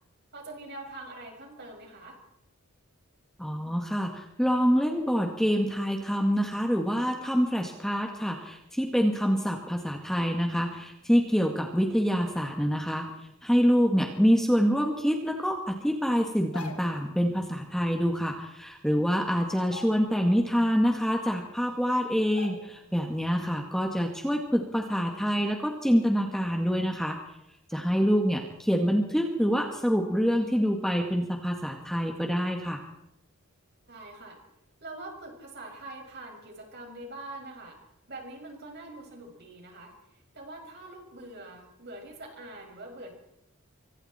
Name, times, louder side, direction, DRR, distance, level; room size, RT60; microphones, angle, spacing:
voice 1, 0.3-2.2 27.7-27.9 33.9-34.4 34.8-37.8 38.1-43.1, right 2 dB, 50° right, 2 dB, 6.2 m, -44 dB
voice 2, 3.4-13.1 13.4-27.2 27.7-32.8, equal, ahead, 2 dB, 1.9 m, -26 dB
sound 1, 16.4-17.1 18.5-18.6 19.0-19.2 19.6-20.4 20.8-20.9 21.7-21.8 22.3-23.0 23.3-23.5, left 3 dB, 85° left, 2.9 m, -45 dB
26.0 x 25.0 x 4.4 m, 0.83 s
head